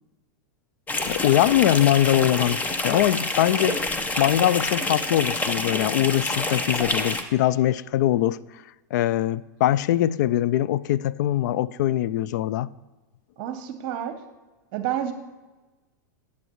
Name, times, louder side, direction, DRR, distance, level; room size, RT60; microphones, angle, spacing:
sound 1, 0.9-7.2, left 2 dB, 15° left, 1.0 m, -27 dB
voice 1, 1.1-3.8 4.2-8.4 8.9-12.7, left 13 dB, 65° left, 0.4 m, -22 dB
voice 2, 13.4-14.2 14.7-15.1, right 11 dB, 50° right, 0.9 m, -29 dB
12.5 x 8.6 x 3.1 m
hypercardioid pair, 110°, 10 cm